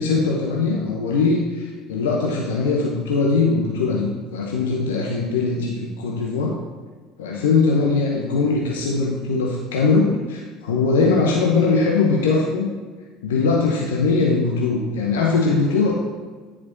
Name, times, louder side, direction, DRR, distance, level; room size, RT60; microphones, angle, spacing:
voice 1, 0.0-6.6 7.2-12.7 13.2-15.9, left 4 dB, 75° left, -2 dB, 0.8 m, -21 dB
9.7 x 4.8 x 2.7 m, 1.4 s
figure-of-eight pair, 65°, 0 cm